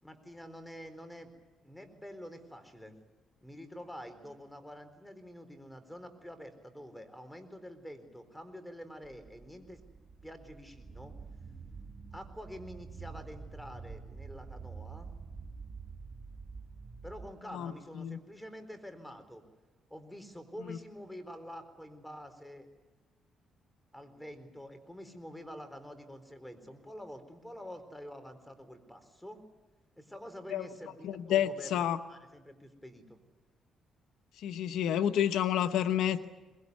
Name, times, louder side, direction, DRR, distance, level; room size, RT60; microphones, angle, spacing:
voice 1, 0.0-1.3 1.6-2.9 3.4-9.8 10.2-11.1 12.1-15.1 17.0-19.4 19.9-22.7 23.9-29.4 30.0-33.2, equal, 5° left, 9 dB, 4.1 m, -47 dB
sound 1, 9.0-17.3, right 5 dB, 25° right, 2.0 m, -47 dB
voice 2, 17.5-18.2 20.7-20.8 30.5-30.7 31.0-32.0 34.4-36.3, left 10 dB, 80° left, 10 dB, 1.0 m, -30 dB
23.5 x 21.0 x 9.6 m, 1.2 s
cardioid pair, 90°, 0 cm